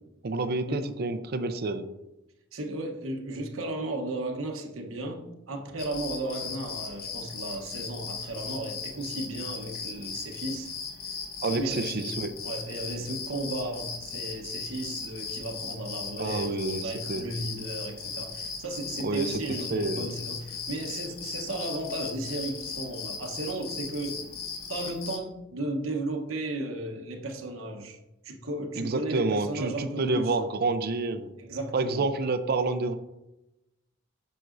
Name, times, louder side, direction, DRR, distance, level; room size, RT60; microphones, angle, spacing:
voice 1, 0.2-1.8 11.4-12.3 16.2-17.2 19.0-19.4 19.7-20.0 28.7-31.3 31.7-32.9, right 3 dB, 50° right, 10 dB, 0.5 m, -28 dB
voice 2, 2.5-10.7 11.4-12.1 12.4-28.0 28.2-30.3 31.4-32.1, right 2 dB, 75° right, 4 dB, 1.0 m, -35 dB
sound 1, 5.8-25.2, left 5 dB, 50° left, 1.1 m, -38 dB
7.7 x 6.8 x 2.6 m, 0.94 s
head